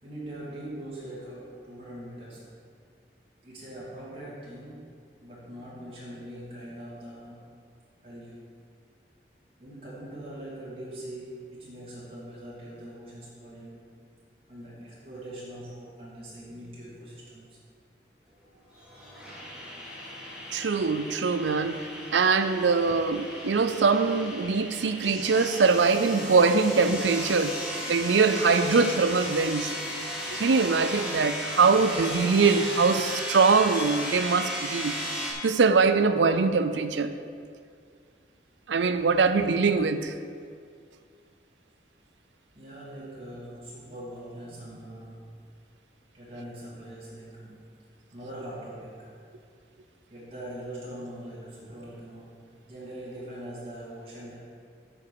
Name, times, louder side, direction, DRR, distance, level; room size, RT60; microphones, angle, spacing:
voice 1, 0.0-2.6 3.4-7.6 8.0-8.5 9.6-14.0 14.5-17.6 42.5-45.5 46.1-49.2 50.1-54.4, right 1 dB, 30° right, 2.6 m, -42 dB
sound 1, 18.7-35.3, equal, 5° right, 1.7 m, -35 dB
voice 2, 20.5-27.6 27.9-29.8 30.3-35.0 35.4-37.2 38.7-40.1, right 4 dB, 90° right, 0.5 m, -23 dB
9.3 x 5.3 x 6.9 m
head